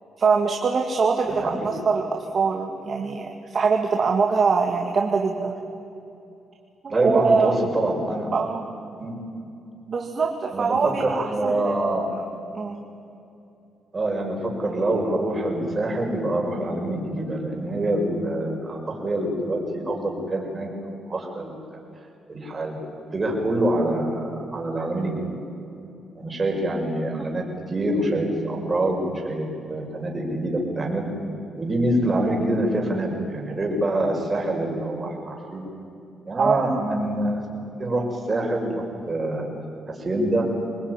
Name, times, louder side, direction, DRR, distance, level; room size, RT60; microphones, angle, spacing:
voice 1, 0.2-2.1 2.3-5.8 6.8-7.6 8.3-8.7 9.9-11.6 12.5-12.8 36.4-36.7, right 5 dB, 45° right, 2 dB, 2.2 m, -23 dB
voice 2, 1.2-1.7 6.9-8.3 9.0-9.1 10.5-12.1 13.9-20.7 21.0-21.6 22.3-25.2 26.1-27.4 27.7-31.1 31.6-35.7 36.3-37.4 37.8-39.5 39.9-40.5, right 1 dB, 30° right, 0 dB, 6.2 m, -25 dB
25.5 x 19.5 x 9.9 m, 2.7 s
cardioid pair, 90°, 0 cm